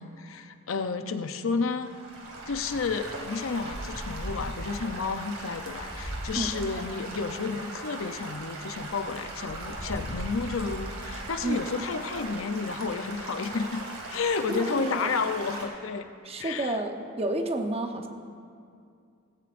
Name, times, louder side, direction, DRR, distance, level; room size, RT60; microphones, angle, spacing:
voice 1, 0.0-2.0 2.5-16.1 16.4-16.8, left 4 dB, 65° left, 8 dB, 0.6 m, -31 dB
Stream / Gurgling / Trickle dribble, 1.8-15.6, right 2 dB, 75° right, 2.4 m, -40 dB
Wind, 2.6-12.5, equal, 5° right, 1.6 m, -41 dB
voice 2, 14.5-15.1 16.2-18.1, right 1 dB, 30° right, 4 dB, 0.9 m, -30 dB
17.5 x 16.5 x 2.6 m, 2.4 s
head